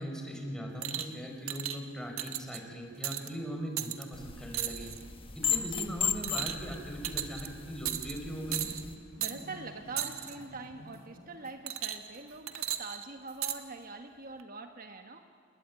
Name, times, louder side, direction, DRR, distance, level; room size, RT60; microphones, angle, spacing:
voice 1, 0.0-4.9 5.3-8.7, equal, 5° left, 2 dB, 4.4 m, -39 dB
sound 1, 0.8-1.1 1.5-1.8 2.2-2.6 3.0-3.3 3.8-4.0 4.5-5.0 5.4-5.7 6.2-6.7 7.0-7.5 7.8-8.2 8.5-8.8 9.2-9.4 10.0-10.3 11.7-12.2 12.5-13.6 14.4-14.5, right 12 dB, 85° right, 1.5 m, -35 dB
sound 2, 4.1-9.0, left 6 dB, 25° left, 1.3 m, -36 dB
sound 3, 8.3-12.7, equal, 75° left, 5.6 m, -54 dB
voice 2, 9.2-15.2, right 3 dB, 45° right, 6 dB, 1.3 m, -44 dB
28.5 x 21.0 x 9.2 m, 2.1 s
head